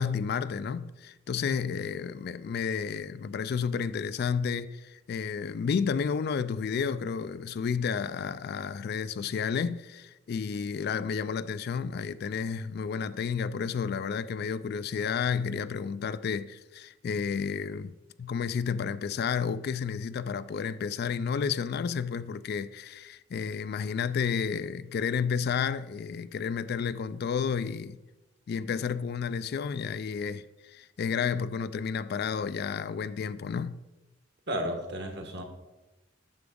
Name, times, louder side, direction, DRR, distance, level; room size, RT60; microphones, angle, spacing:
voice 1, 0.0-28.0 28.5-33.8, left 6 dB, 50° left, 0.3 m, -31 dB
voice 2, 34.5-35.4, equal, 60° right, 1.4 m, -33 dB
9.4 x 6.9 x 3.8 m
head